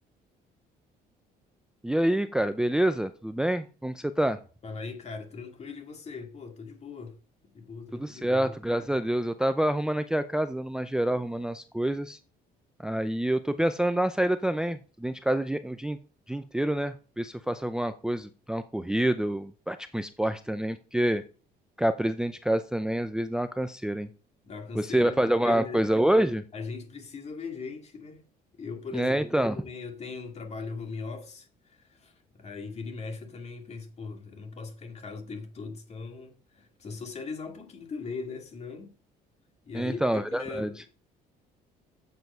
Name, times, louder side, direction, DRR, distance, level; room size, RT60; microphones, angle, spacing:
voice 1, 1.8-4.4 7.9-12.2 12.8-16.0 16.3-21.2 21.8-24.1 24.7-26.4 28.9-29.6 39.7-40.7, right 1 dB, 5° right, 0.5 m, -27 dB
voice 2, 4.6-7.2 7.5-8.6 24.4-25.8 26.5-28.3 28.6-38.9 39.6-40.9, left 4 dB, 40° left, 2.2 m, -40 dB
7.9 x 6.9 x 5.5 m
cardioid pair, 110°, 17 cm